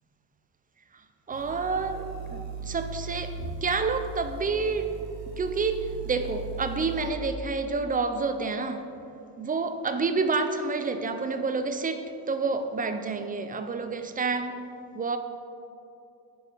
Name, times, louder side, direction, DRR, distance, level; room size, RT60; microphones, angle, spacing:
voice 1, 1.3-4.9 5.4-9.0 9.4-14.6 14.9-15.2, right 4 dB, 20° right, 8 dB, 0.3 m, -29 dB
sound 1, 1.3-7.1, right 4 dB, 70° right, 1.1 m, -38 dB
8.7 x 5.1 x 4.4 m, 2.7 s
cardioid pair, 105°, 44 cm